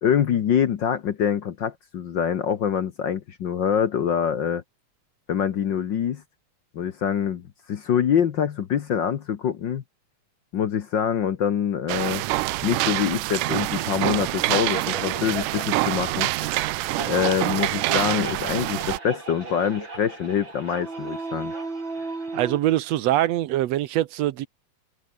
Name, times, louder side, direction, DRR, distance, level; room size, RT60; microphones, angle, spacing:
voice 1, 0.0-4.6 5.3-6.2 6.7-9.8 10.5-12.2 12.6-16.3 17.1-21.5, left 8 dB, 65° left, 1.1 m, -25 dB
sound 1, 11.9-19.0, right 20 dB, 90° right, 2.2 m, -26 dB
sound 2, 13.7-22.6, right 3 dB, 35° right, 5.9 m, -35 dB
voice 2, 22.3-24.5, right 14 dB, 70° right, 1.8 m, -23 dB
omnidirectional pair, 3.5 m